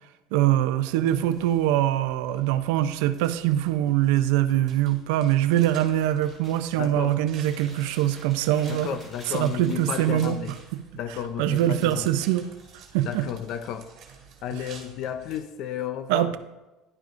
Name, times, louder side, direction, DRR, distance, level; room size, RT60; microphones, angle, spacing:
voice 1, 0.3-9.0 9.3-10.3 11.4-12.5 12.9-13.2 16.1-16.4, right 12 dB, 85° right, 11 dB, 0.5 m, -23 dB
sound 1, 0.9-15.4, right 6 dB, 50° right, 2.5 m, -50 dB
Chewing mastication, 6.2-6.6 7.1-10.6 11.7-13.2, equal, 20° left, 3.5 m, -50 dB
voice 2, 6.7-7.2 8.7-10.6 10.9-12.1 13.0-13.9 14.4-16.4, left 9 dB, 55° left, 11 dB, 0.5 m, -33 dB
11.0 x 10.5 x 2.5 m, 1.1 s
cardioid pair, 130°, 0 cm